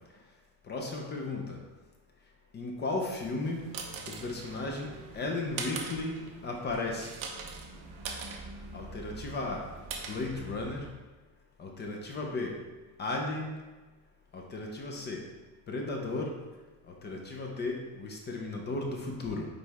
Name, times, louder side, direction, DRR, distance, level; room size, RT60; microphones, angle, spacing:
voice 1, 0.7-1.6 2.5-3.7 4.1-7.1 8.7-9.6 10.1-10.9 11.6-12.6 13.0-13.5 14.3-15.2 15.7-16.3 16.9-19.5, left 2 dB, 25° left, 1 dB, 0.6 m, -35 dB
sound 1, 3.3-11.0, right 4 dB, 50° right, 1.0 m, -42 dB
9.1 x 3.3 x 3.5 m, 1.2 s
cardioid pair, 175°, 42 cm